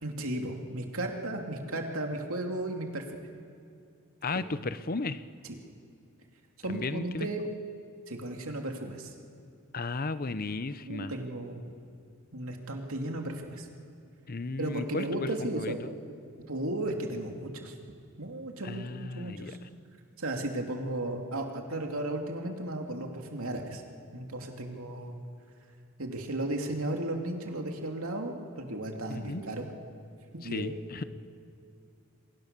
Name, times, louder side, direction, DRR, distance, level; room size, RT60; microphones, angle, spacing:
voice 1, 0.0-3.0 4.3-4.7 6.6-7.4 8.1-9.1 10.8-11.6 12.3-13.7 14.6-15.8 16.5-17.7 18.2-19.6 20.2-23.8 24.1-25.2 26.0-29.7 30.3-31.0, right 1 dB, 75° right, 2 dB, 2.8 m, -35 dB
voice 2, 4.2-5.2 6.7-7.3 9.7-11.1 14.3-15.3 15.6-15.7 18.6-19.6 29.1-29.4 30.4-31.0, left 3 dB, 40° left, 13 dB, 0.7 m, -34 dB
28.5 x 23.0 x 6.8 m, 2.5 s
head